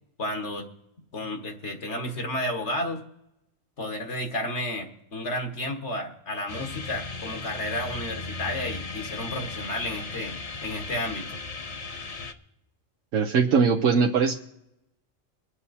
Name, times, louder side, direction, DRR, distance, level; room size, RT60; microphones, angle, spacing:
voice 1, 0.2-0.7 1.1-3.0 3.8-11.4, left 1 dB, 60° left, 4 dB, 1.7 m, -32 dB
sound 1, 6.5-12.3, left 3 dB, 35° left, 0.7 m, -37 dB
voice 2, 13.1-14.3, right 5 dB, 75° right, 3 dB, 1.1 m, -21 dB
23.0 x 8.2 x 4.2 m, 0.82 s
omnidirectional pair, 1.4 m